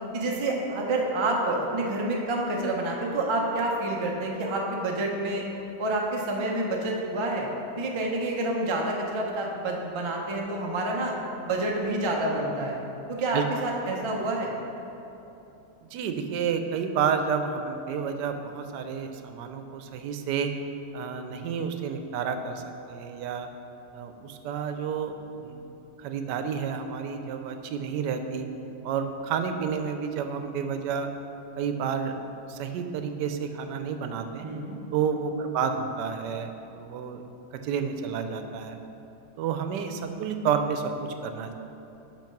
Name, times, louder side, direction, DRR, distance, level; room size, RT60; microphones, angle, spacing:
voice 1, 0.1-5.5 5.8-7.5 7.8-11.1 11.4-12.8 13.1-14.5 34.4-34.8, right 2 dB, 40° right, -1 dB, 0.4 m, -28 dB
voice 2, 15.9-20.5 20.9-23.5 23.9-25.1 25.4-25.6 26.0-28.5 28.8-31.1 31.6-32.1 32.5-34.5 34.9-37.2 37.6-38.8 39.4-41.5, right 6 dB, 90° right, 7 dB, 1.2 m, -30 dB
6.0 x 5.1 x 5.8 m, 3.0 s
omnidirectional pair, 1.8 m